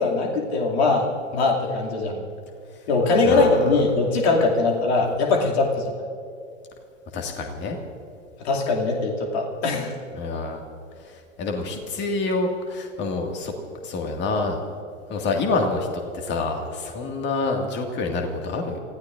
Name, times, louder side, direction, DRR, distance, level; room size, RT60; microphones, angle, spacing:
voice 1, 0.0-2.2 2.9-6.1 8.4-9.9, left 3 dB, 55° left, -1 dB, 2.7 m, -21 dB
voice 2, 7.1-7.8 10.1-10.6 11.0-13.5 13.8-14.6 15.1-15.9 16.1-18.8, left 3 dB, 30° left, 3 dB, 2.1 m, -27 dB
29.5 x 16.0 x 2.6 m, 2.5 s
figure-of-eight pair, 100°, 39 cm